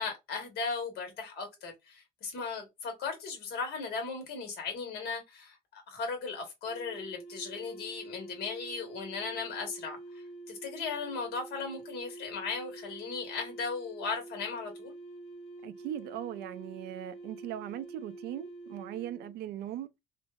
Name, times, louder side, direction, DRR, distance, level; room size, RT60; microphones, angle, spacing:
voice 1, 0.0-14.9, left 4 dB, 70° left, 1.2 m, -37 dB
sound 1, 6.6-19.4, right 2 dB, 85° left, 1.0 m, -47 dB
voice 2, 15.6-19.9, right 11 dB, 75° right, 0.4 m, -39 dB
3.1 x 2.0 x 2.3 m
cardioid pair, 110°, 17 cm